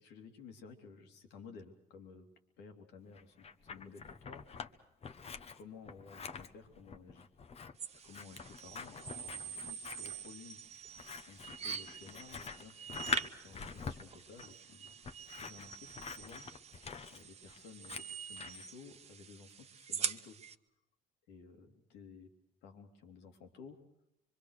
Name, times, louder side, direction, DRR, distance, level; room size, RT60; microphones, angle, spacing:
voice 1, 0.0-2.3 2.6-4.9 5.4-7.3 8.0-10.6 11.2-16.5 17.1-20.4 21.3-22.3 22.6-23.8, left 5 dB, 90° left, 5 dB, 3.0 m, -55 dB
Scissors, 3.1-4.7 5.0-18.7, left 5 dB, 35° left, 1.3 m, -45 dB
sound 1, 7.8-20.5, right 7 dB, 40° right, 1.1 m, -45 dB
25.0 x 24.0 x 6.6 m, 0.84 s
cardioid pair, 110°, 17 cm